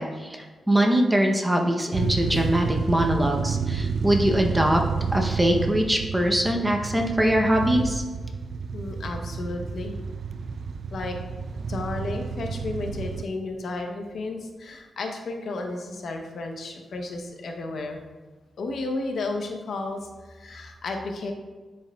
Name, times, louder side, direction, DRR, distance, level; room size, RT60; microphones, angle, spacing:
voice 1, 0.0-4.8 5.1-8.0, right 1 dB, 10° right, 2 dB, 0.7 m, -22 dB
sound 1, 1.9-13.2, right 5 dB, 60° right, 0.3 m, -30 dB
voice 2, 8.7-10.0 10.9-11.2 11.7-18.0 18.6-20.0 20.3-21.3, left 2 dB, 65° left, 3 dB, 0.8 m, -33 dB
9.9 x 4.6 x 2.3 m, 1.3 s
wide cardioid pair, 130°, 0 cm